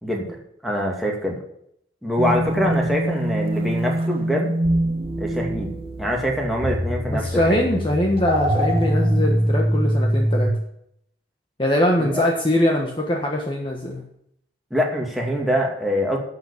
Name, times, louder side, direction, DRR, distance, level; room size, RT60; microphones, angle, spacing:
voice 1, 0.6-1.4 2.0-4.5 5.2-5.7 6.0-7.4 7.7-7.8 12.0-12.2 14.7-16.2, equal, ahead, -2 dB, 2.4 m, -24 dB
sound 1, 2.2-10.5, right 1 dB, 30° right, 1.5 m, -23 dB
voice 2, 7.1-10.5 11.6-14.0, left 1 dB, 30° left, 0 dB, 1.3 m, -22 dB
11.5 x 7.0 x 7.2 m, 0.73 s
head